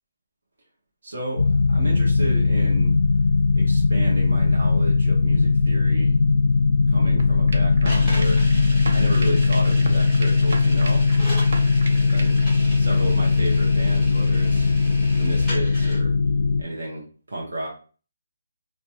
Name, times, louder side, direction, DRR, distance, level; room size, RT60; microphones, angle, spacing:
voice 1, 1.0-2.9 3.5-6.2 6.9-8.4 8.9-11.0 11.9-12.4 12.8-14.7 15.2-16.1 16.6-17.7, right 1 dB, 55° right, -3 dB, 0.7 m, -32 dB
sound 1, 1.4-16.6, left 4 dB, 85° left, 0.3 m, -19 dB
sound 2, 7.2-12.5, right 3 dB, 40° right, 0.3 m, -36 dB
sound 3, 7.8-16.0, equal, 5° right, 0.8 m, -37 dB
2.5 x 2.1 x 2.7 m, 0.38 s
hypercardioid pair, 180°, 0 cm